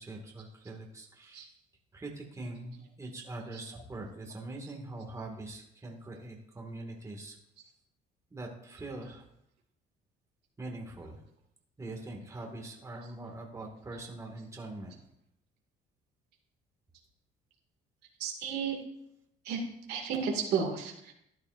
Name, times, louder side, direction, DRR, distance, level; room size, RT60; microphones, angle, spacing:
voice 1, 0.0-1.6 1.9-7.4 8.3-9.2 10.6-11.2 11.8-15.0, right 2 dB, 20° right, 0 dB, 2.1 m, -43 dB
voice 2, 18.2-18.8 19.4-19.6 19.9-21.1, right 6 dB, 75° right, 1 dB, 2.4 m, -32 dB
14.0 x 10.5 x 2.7 m, 0.77 s
cardioid pair, 110°, 17 cm